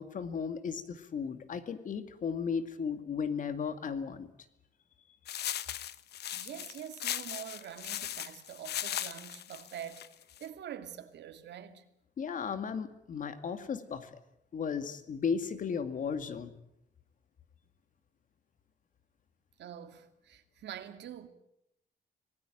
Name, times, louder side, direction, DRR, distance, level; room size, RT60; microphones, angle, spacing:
voice 1, 0.0-4.3 12.2-14.2 14.5-16.5, left 6 dB, 50° left, 2.2 m, -35 dB
sound 1, 5.3-10.5, left 11 dB, 70° left, 1.0 m, -38 dB
voice 2, 6.3-10.1 10.4-11.8 19.6-21.3, right 10 dB, 80° right, 2.5 m, -45 dB
26.5 x 19.0 x 9.2 m
wide cardioid pair, 170°, 18 cm